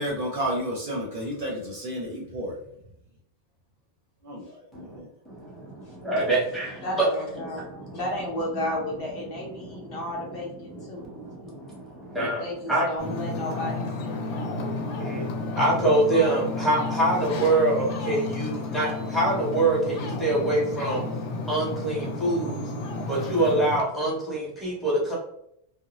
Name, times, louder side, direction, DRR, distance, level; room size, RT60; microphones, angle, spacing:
voice 1, 0.0-2.6 4.2-5.1, equal, 60° right, -2 dB, 0.6 m, -31 dB
voice 2, 5.3-7.1 7.4-8.0 9.6-9.9 10.7-12.8 14.3-21.0 21.5-22.6 23.1-25.2, right 2 dB, ahead, -5 dB, 0.7 m, -26 dB
voice 3, 6.8-7.6 7.9-11.1 12.1-14.3, left 1 dB, 55° left, -3 dB, 0.9 m, -33 dB
Ocean, 13.0-23.8, left 2 dB, 90° left, 0.9 m, -32 dB
2.5 x 2.0 x 2.8 m, 0.72 s
omnidirectional pair, 1.2 m